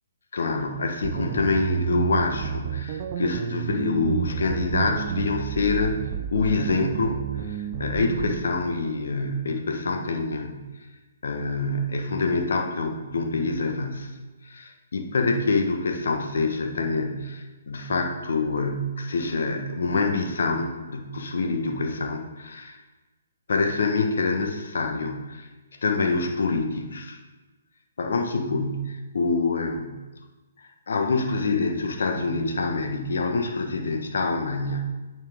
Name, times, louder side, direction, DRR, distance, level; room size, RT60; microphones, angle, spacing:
voice 1, 0.3-6.0 6.3-10.6 11.2-14.1 14.4-22.8 23.5-25.5 25.8-27.2 28.0-30.0 30.9-34.9, left 3 dB, 70° left, 4 dB, 1.2 m, -26 dB
sound 1, 1.0-8.4, right 9 dB, 45° right, 0.6 m, -30 dB
9.2 x 5.8 x 3.7 m, 1.2 s
hypercardioid pair, 140°, 0 cm